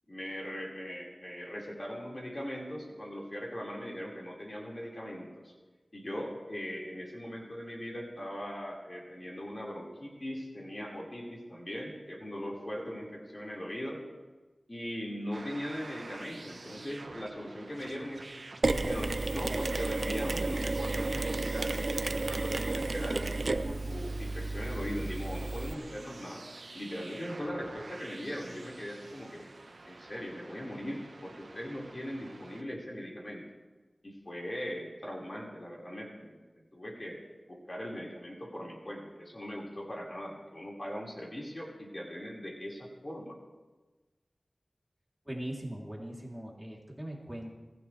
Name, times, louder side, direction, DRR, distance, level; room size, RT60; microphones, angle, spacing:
voice 1, 0.1-5.5 5.9-14.0 14.7-18.3 18.7-26.4 26.7-29.5 29.9-33.4 34.0-36.3 36.7-43.3, equal, 40° left, -3 dB, 5.1 m, -40 dB
sound 1, 15.3-32.6, right 3 dB, 90° right, 1.2 m, -49 dB
Mechanisms, 18.6-25.7, right 2 dB, 70° right, 0.8 m, -32 dB
voice 2, 45.2-47.5, right 1 dB, 10° right, -3 dB, 3.4 m, -40 dB
25.0 x 16.0 x 3.4 m, 1.2 s
wide cardioid pair, 50°, 0 cm